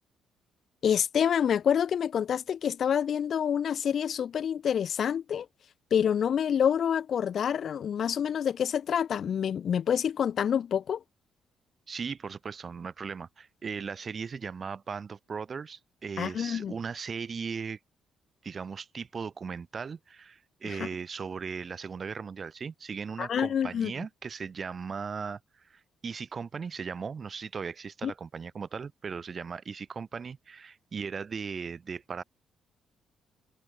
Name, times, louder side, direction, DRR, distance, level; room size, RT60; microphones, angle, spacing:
voice 1, 0.8-5.5 5.9-11.0 16.2-16.7 20.6-20.9 23.2-23.9 28.0-28.1, left 8 dB, 60° left, 1.0 m, -27 dB
voice 2, 11.9-17.8 18.4-25.4 25.7-32.2, right 5 dB, 40° right, 0.9 m, -37 dB
cardioid pair, 90°, 0 cm